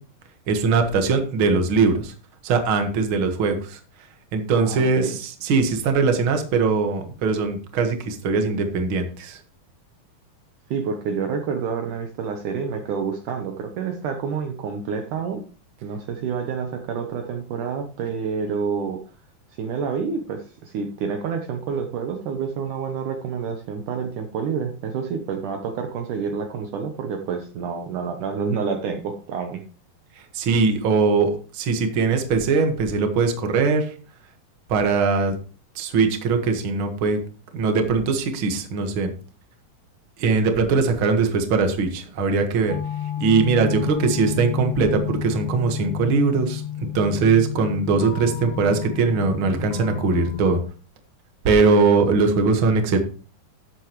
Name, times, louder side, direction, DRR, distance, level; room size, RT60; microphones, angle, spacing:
voice 1, 0.5-2.1 2.4-3.8 4.3-9.4 30.3-33.9 34.7-35.3 35.8-37.2 37.5-39.1 40.2-42.7 43.2-46.6 46.9-50.6 51.4-53.0, right 4 dB, 50° right, 6 dB, 1.7 m, -21 dB
voice 2, 4.5-5.1 10.7-15.4 15.8-19.0 19.6-29.6, right 6 dB, 70° right, 4 dB, 2.2 m, -28 dB
sound 1, 42.7-50.6, left 10 dB, 70° left, 2.6 m, -31 dB
13.0 x 8.2 x 3.1 m, 0.37 s
omnidirectional pair, 4.2 m